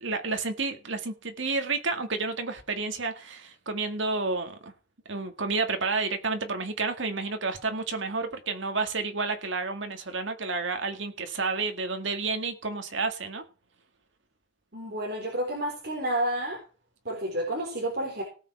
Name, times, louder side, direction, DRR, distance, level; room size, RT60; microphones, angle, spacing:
voice 1, 0.0-4.7 5.1-13.4, right 3 dB, 70° right, 1.9 m, -30 dB
voice 2, 14.7-16.6 17.1-18.2, right 1 dB, 50° right, 4.0 m, -30 dB
18.0 x 6.5 x 4.6 m
head